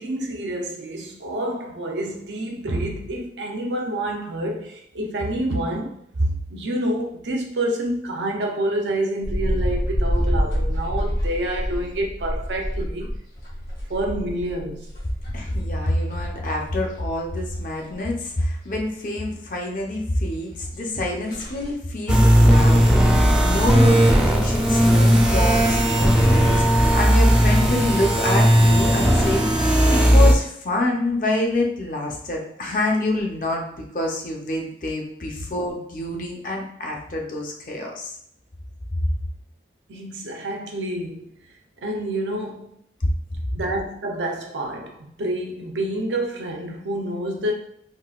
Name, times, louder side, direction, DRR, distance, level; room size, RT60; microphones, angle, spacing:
voice 1, 0.0-13.2 13.9-14.9 39.9-41.3 41.8-42.7 43.5-47.5, right 1 dB, 90° right, 0.6 m, -28 dB
sound 1, 9.2-16.4 16.7-17.6 17.9-18.0 18.4-18.5 20.5-20.6 20.9-21.0 21.2-21.7, equal, 65° left, 1.0 m, -27 dB
voice 2, 15.3-22.8 23.4-29.5 29.9-38.1 43.0-43.1, left 1 dB, 45° left, 0.6 m, -26 dB
sound 2, 22.1-30.3, equal, 5° right, 0.3 m, -16 dB
3.7 x 2.3 x 2.3 m
head